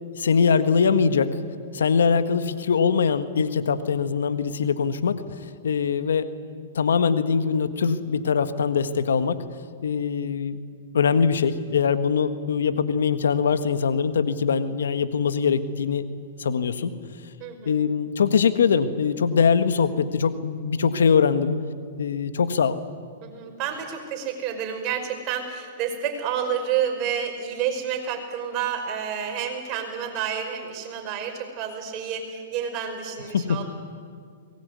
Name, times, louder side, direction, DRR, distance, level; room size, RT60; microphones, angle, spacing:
voice 1, 0.1-1.3 1.7-5.3 5.6-6.3 6.7-9.4 9.8-10.6 10.9-16.1 16.4-16.9 17.6-21.6 22.0-22.8 33.3-33.6, left 6 dB, 80° left, 11 dB, 1.5 m, -22 dB
voice 2, 17.4-17.8 23.2-33.6, right 8 dB, 40° right, 4 dB, 5.2 m, -29 dB
23.0 x 19.5 x 9.6 m, 2.1 s
hypercardioid pair, 125°, 0 cm